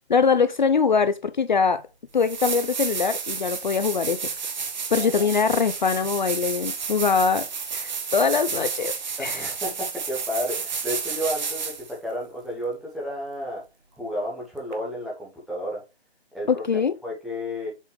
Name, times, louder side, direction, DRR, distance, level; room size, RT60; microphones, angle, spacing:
voice 1, 0.1-1.9 2.1-4.3 4.9-8.9 9.2-9.4 16.5-16.9, left 5 dB, 45° left, 0.6 m, -22 dB
sound 1, 1.7-1.8 2.2-11.9 14.7-14.8, right 5 dB, 45° right, 1.5 m, -31 dB
voice 2, 4.9-5.3 9.2-13.6 14.0-15.8 16.3-17.7, equal, ahead, 0.9 m, -32 dB
7.4 x 5.1 x 3.3 m
figure-of-eight pair, 155°, 32 cm